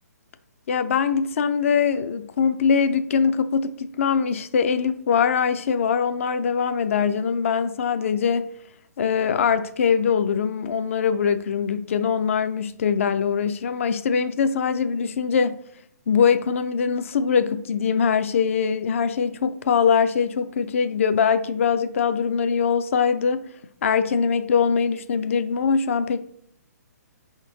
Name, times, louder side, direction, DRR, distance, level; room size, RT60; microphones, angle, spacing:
voice 1, 0.7-8.5 9.0-15.6 16.1-23.4 23.8-26.2, left 6 dB, 50° left, 0.4 m, -22 dB
5.2 x 3.6 x 2.8 m
hypercardioid pair, 160°, 9 cm